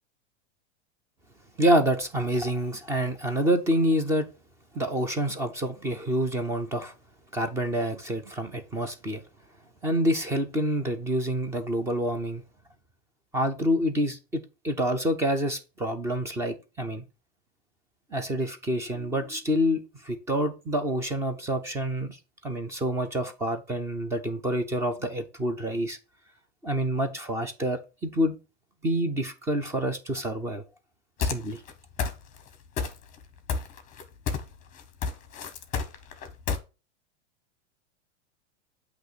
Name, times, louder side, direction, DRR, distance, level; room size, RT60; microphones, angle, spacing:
voice 1, 1.6-4.3 4.7-6.9 7.3-9.2 9.8-12.4 13.3-17.0 18.1-22.2 22.4-26.0 26.6-28.4 28.8-30.6 31.2-31.6, equal, 10° right, 0.4 m, -27 dB
sound 1, 31.2-31.7 32.0-32.5 32.8-33.2 33.5-34.5 34.8-36.6, left 5 dB, 20° left, 0.8 m, -29 dB
8.0 x 2.9 x 6.0 m
supercardioid pair, 155°, 35 cm